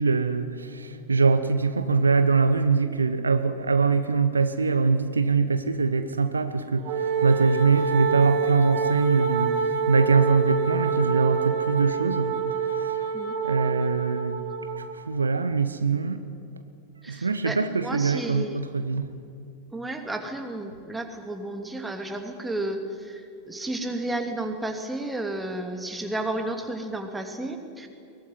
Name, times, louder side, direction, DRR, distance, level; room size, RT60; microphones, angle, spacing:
voice 1, 0.0-12.3 12.6-13.0 13.4-14.4 14.8-16.2 17.1-19.1, right 4 dB, 75° right, 11 dB, 1.1 m, -23 dB
Wind instrument woodwind instrument, 6.8-14.9, right 6 dB, 45° right, 3.0 m, -27 dB
voice 2, 17.0-18.6 19.7-27.9, right 2 dB, 10° right, 4 dB, 2.7 m, -32 dB
22.5 x 19.5 x 9.9 m, 2.5 s
figure-of-eight pair, 90°, 0 cm